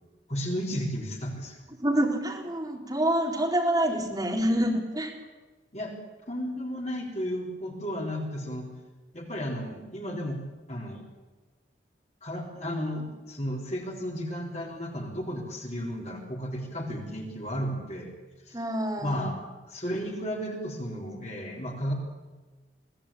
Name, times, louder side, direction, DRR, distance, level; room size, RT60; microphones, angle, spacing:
voice 1, 0.3-1.6 5.7-5.9 6.3-8.7 9.1-10.4 10.7-11.0 12.2-18.1 18.5-18.6 19.0-19.4 19.7-21.9, equal, 35° left, 0 dB, 3.9 m, -33 dB
voice 2, 1.7-5.1 18.5-19.4, right 1 dB, 20° right, -1 dB, 4.1 m, -27 dB
23.5 x 17.5 x 8.8 m, 1.2 s
head